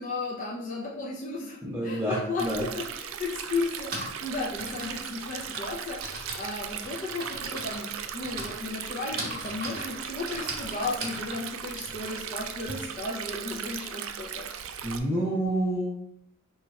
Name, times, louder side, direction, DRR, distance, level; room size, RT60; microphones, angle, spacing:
voice 1, 0.0-14.8, left 3 dB, 40° left, -4 dB, 0.4 m, -35 dB
voice 2, 1.6-2.7 14.8-15.9, right 1 dB, 10° right, -8 dB, 0.6 m, -28 dB
Stream, 2.4-15.0, right 8 dB, 70° right, 0.3 m, -38 dB
Typing, 3.6-12.7, right 2 dB, 50° right, 0.9 m, -39 dB
3.1 x 2.4 x 4.1 m, 0.79 s
head